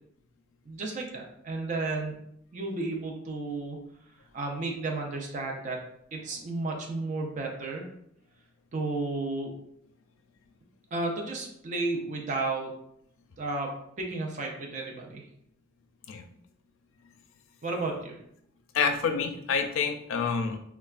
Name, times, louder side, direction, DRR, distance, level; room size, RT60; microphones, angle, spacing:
voice 1, 0.7-2.2 2.5-3.8 4.3-5.8 6.1-7.8 8.7-9.5 10.9-12.7 13.4-15.2 17.6-18.2, right 3 dB, 35° right, 1 dB, 0.4 m, -33 dB
voice 2, 18.7-20.6, left 5 dB, 80° left, 6 dB, 0.4 m, -27 dB
3.2 x 2.2 x 2.3 m, 0.72 s
head